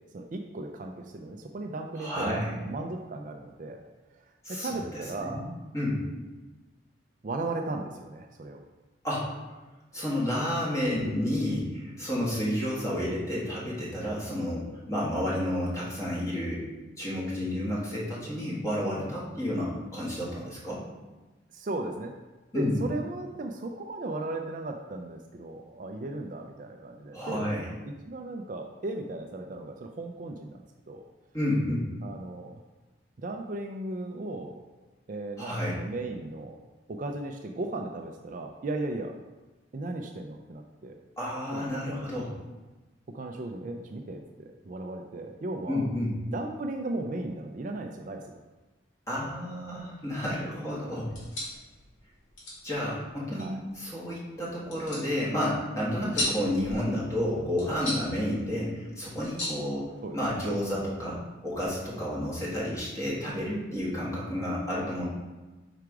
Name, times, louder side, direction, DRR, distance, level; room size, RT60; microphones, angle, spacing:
voice 1, 0.1-3.8 4.1-4.2 4.5-5.4 7.2-8.6 9.9-10.2 21.5-22.1 22.5-31.0 32.0-32.6 33.2-34.6 35.1-36.6 36.9-39.1 39.7-41.0 41.5-42.0 43.1-45.8 46.3-48.2 53.4-53.6 60.0-60.2, right 2 dB, 45° right, 4 dB, 0.4 m, -36 dB
voice 2, 1.9-2.5 4.4-4.7 5.2-5.5 5.7-6.0 9.0-9.3 9.9-16.6 17.0-20.8 22.5-22.8 27.1-27.6 31.3-31.9 35.4-35.8 41.2-42.3 45.7-46.1 49.1-51.1 52.6-65.0, left 1 dB, 15° left, -6 dB, 1.7 m, -31 dB
sound 1, 51.0-60.5, left 1 dB, 90° left, 2.1 m, -39 dB
5.0 x 4.7 x 4.6 m, 1.2 s
head